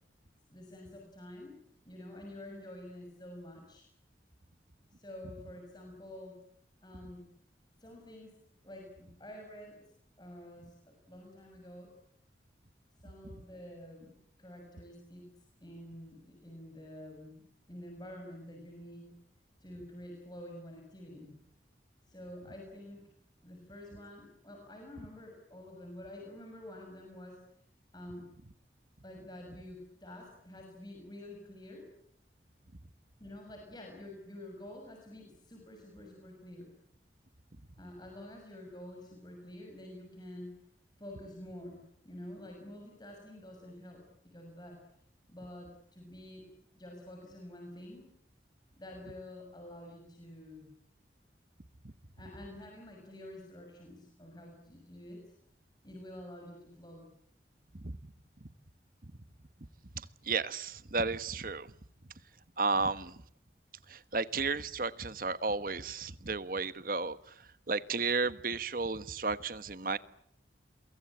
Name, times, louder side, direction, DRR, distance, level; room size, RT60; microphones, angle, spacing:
voice 1, 0.5-1.6 1.8-3.9 5.0-6.4 6.8-7.2 7.8-8.3 8.6-9.8 10.2-11.9 13.0-14.1 14.4-15.3 15.6-19.1 19.6-21.4 22.1-23.1 23.4-27.4 27.9-28.3 29.0-31.9 33.2-36.7 37.8-40.6 41.0-41.8 42.0-44.8 45.3-46.5 46.7-48.0 48.8-50.7 52.2-55.2 55.8-57.1, left 1 dB, 25° left, 6.6 m, -48 dB
voice 2, 60.3-61.7 62.6-63.1 63.9-67.2 67.7-70.0, right 4 dB, 50° right, 1.2 m, -33 dB
29.0 x 23.5 x 8.7 m
head